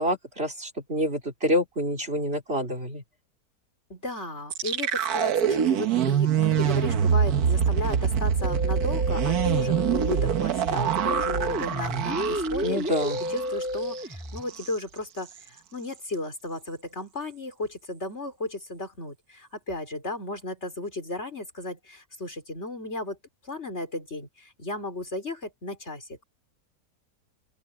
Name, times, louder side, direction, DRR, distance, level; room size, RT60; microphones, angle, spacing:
voice 1, 0.0-3.0 12.6-13.2, equal, 40° right, 3.1 m, -27 dB
voice 2, 3.9-12.8 13.3-23.2 23.4-26.2, left 2 dB, 45° left, 4.6 m, -35 dB
sound 1, 4.5-13.5 13.8-14.0 14.4-14.7, right 8 dB, 70° right, 1.5 m, -25 dB
Musical instrument, 8.4-14.4, equal, 5° right, 4.6 m, -32 dB
open air
omnidirectional pair, 1.7 m